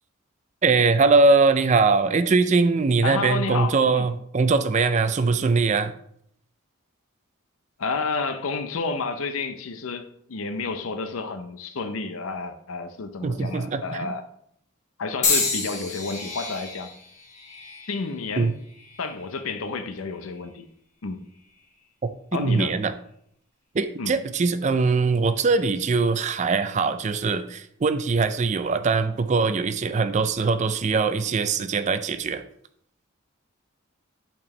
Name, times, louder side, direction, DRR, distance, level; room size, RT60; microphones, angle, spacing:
voice 1, 0.6-5.9 13.2-14.1 18.4-18.5 22.0-22.1 22.4-22.9 23.7-32.4, right 4 dB, 35° right, 11 dB, 0.4 m, -22 dB
voice 2, 3.0-4.1 7.8-14.2 15.0-16.9 17.9-18.5 19.0-20.6 21.0-21.2 22.3-22.8 24.0-24.1, left 4 dB, 80° left, 9 dB, 0.6 m, -30 dB
sound 1, 15.2-19.4 20.1-20.5 21.5-21.6, left 4 dB, 35° left, 1.3 m, -30 dB
8.5 x 4.4 x 3.2 m, 0.69 s
head